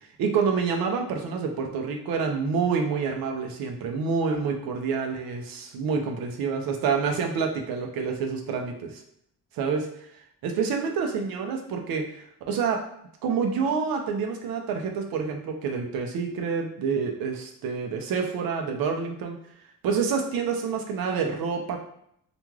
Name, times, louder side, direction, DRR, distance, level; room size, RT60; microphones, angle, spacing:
voice 1, 0.2-9.0 9.6-9.9 10.4-12.8 13.2-19.4 19.8-21.9, right 5 dB, 80° right, 3 dB, 0.6 m, -27 dB
3.2 x 2.4 x 2.3 m, 0.70 s
cardioid pair, 90°, 35 cm